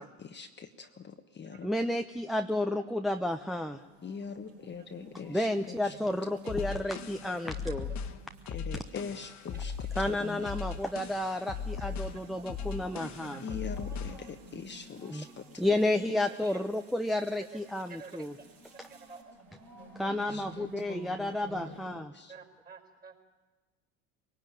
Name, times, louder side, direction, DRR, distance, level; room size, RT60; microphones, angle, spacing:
voice 1, 0.0-1.7 4.0-5.9 8.5-9.7 10.1-10.5 13.4-15.8 20.1-21.8 22.1-22.3, left 6 dB, 30° left, 5 dB, 1.3 m, -43 dB
voice 2, 1.6-3.8 5.3-7.9 8.7-8.8 10.0-13.4 15.1-15.2 15.6-18.3 19.9-22.1, left 1 dB, ahead, 6 dB, 0.8 m, -31 dB
sound 1, 3.1-21.9, right 3 dB, 55° right, 5.1 m, -54 dB
sound 2, 3.6-19.2, right 4 dB, 80° right, 6.0 m, -64 dB
voice 3, 6.4-6.8 7.3-7.7 9.5-10.0 10.4-10.5 11.5-12.4 12.9-13.4 14.2-14.3 16.2-16.6 17.1-17.2 17.9-18.5 18.9-19.3 19.8-20.1 22.3-23.3, right 5 dB, 25° right, 5 dB, 4.9 m, -52 dB
sound 3, 6.5-14.3, left 6 dB, 45° left, 1.6 m, -38 dB
21.5 x 18.5 x 9.1 m, 1.3 s
hypercardioid pair, 80°, 38 cm